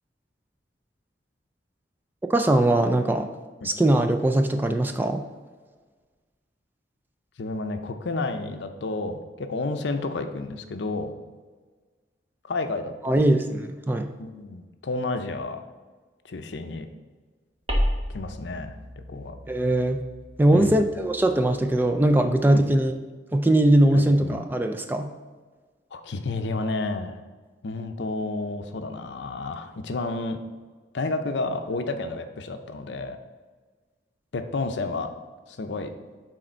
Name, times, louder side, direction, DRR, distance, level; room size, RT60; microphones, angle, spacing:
voice 1, 2.3-3.3 3.6-5.2 13.0-14.1 19.5-20.0 20.4-22.9 23.3-25.1, right 1 dB, 10° right, 6 dB, 0.3 m, -21 dB
voice 2, 7.4-11.2 12.4-13.4 14.2-15.6 16.2-16.9 18.1-19.4 20.5-20.8 22.5-22.6 23.9-24.4 25.9-27.2 27.6-30.4 30.9-33.2 34.3-35.1 35.5-35.9, left 3 dB, 70° left, 7 dB, 0.6 m, -31 dB
sound 1, 17.7-22.5, equal, 35° right, 1.1 m, -33 dB
6.4 x 4.3 x 4.3 m, 1.4 s
head